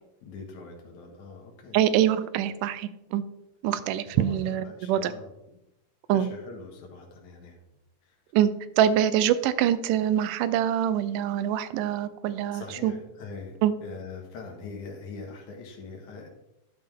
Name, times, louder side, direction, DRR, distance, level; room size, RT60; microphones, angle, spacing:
voice 1, 0.2-1.8 4.1-5.3 6.1-7.6 8.0-8.2 12.5-16.3, left 4 dB, 65° left, 1 dB, 2.8 m, -42 dB
voice 2, 1.7-3.2 3.6-5.1 6.1-6.3 8.3-12.9 13.6-13.7, right 10 dB, 80° right, 14 dB, 2.1 m, -24 dB
12.0 x 5.6 x 3.5 m, 0.87 s
omnidirectional pair, 3.8 m